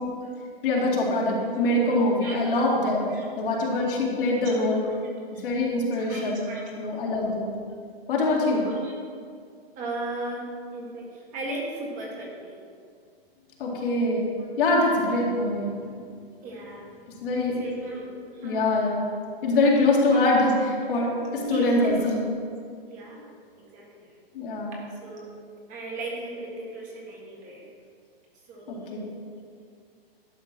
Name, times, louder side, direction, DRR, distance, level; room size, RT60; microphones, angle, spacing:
voice 1, 0.6-3.0 3.4-4.8 5.3-6.5 6.8-7.5 8.1-8.6 13.6-14.3 14.6-15.7 17.2-17.6 18.4-19.1 19.4-22.2 24.3-24.8 28.7-29.0, left 2 dB, 60° left, -3 dB, 2.3 m, -24 dB
voice 2, 2.2-2.6 3.1-3.2 4.5-4.6 4.8-4.9 6.1-6.9 8.5-8.9 9.7-12.6 16.4-16.9 17.6-18.1 18.3-18.7 20.1-20.2 21.4-22.0 22.9-24.1 25.0-25.3 25.7-27.7 28.5-28.8 29.6-29.7, right 1 dB, 25° right, -2 dB, 1.6 m, -36 dB
11.5 x 5.5 x 4.5 m, 2.2 s
hypercardioid pair, 150°, 30 cm